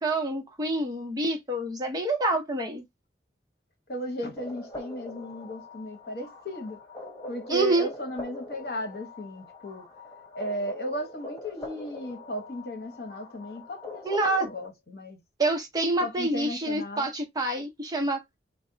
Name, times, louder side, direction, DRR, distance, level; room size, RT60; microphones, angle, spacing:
voice 1, 0.0-2.8 7.5-7.9 14.0-14.5 15.4-18.2, right 2 dB, 20° right, 0.8 m, -27 dB
voice 2, 3.9-6.8 7.3-9.9 10.3-15.2 16.0-17.1, equal, 60° left, 1.1 m, -35 dB
sound 1, 4.4-14.7, left 1 dB, 20° left, 0.9 m, -43 dB
4.0 x 2.2 x 3.8 m
head